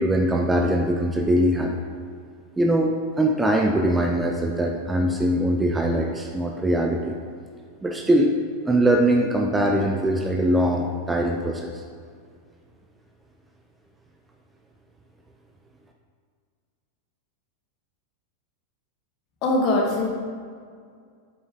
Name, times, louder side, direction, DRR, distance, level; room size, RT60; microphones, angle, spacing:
voice 1, 0.0-1.7 2.6-7.2 7.8-8.3 8.7-11.8, right 1 dB, 10° right, 2 dB, 0.6 m, -22 dB
voice 2, 19.4-20.1, left 2 dB, 40° left, 0 dB, 1.7 m, -21 dB
8.6 x 6.8 x 3.7 m, 2.1 s
figure-of-eight pair, 90°, 0 cm